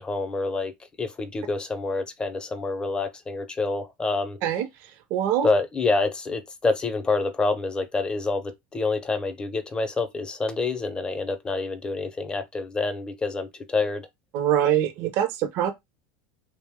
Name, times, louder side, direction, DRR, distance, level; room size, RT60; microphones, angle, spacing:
voice 1, 0.0-4.4 5.4-14.1, left 3 dB, 20° left, 0.6 m, -27 dB
voice 2, 5.1-5.5 14.3-15.7, right 10 dB, 55° right, 0.6 m, -23 dB
2.6 x 2.1 x 3.5 m
supercardioid pair, 115°, 5 cm